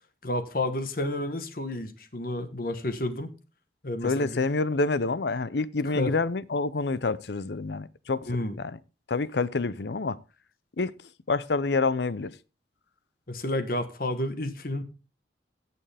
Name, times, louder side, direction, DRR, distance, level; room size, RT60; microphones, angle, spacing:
voice 1, 0.2-3.3 3.8-4.4 5.9-6.1 8.3-8.6 13.3-14.8, left 1 dB, 50° left, 1.3 m, -30 dB
voice 2, 4.0-8.3 8.6-8.8 9.1-10.2 10.8-10.9 11.3-12.3, left 3 dB, 70° left, 0.7 m, -27 dB
16.0 x 6.9 x 3.5 m
head